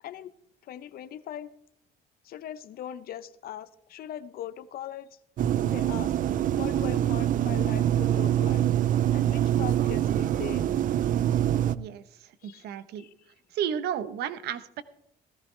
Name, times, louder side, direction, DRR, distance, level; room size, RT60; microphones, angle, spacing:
voice 1, 0.0-0.3 0.6-1.5 2.2-5.2 5.7-6.1 6.5-8.6 9.1-10.7 12.4-12.6 13.0-13.3, left 11 dB, 65° left, 15 dB, 0.8 m, -40 dB
sound 1, 5.4-11.8, right 11 dB, 50° right, 0.5 m, -25 dB
voice 2, 11.8-13.1 13.5-14.8, right 9 dB, 75° right, 13 dB, 1.0 m, -33 dB
17.0 x 14.0 x 3.3 m, 0.73 s
cardioid pair, 110°, 17 cm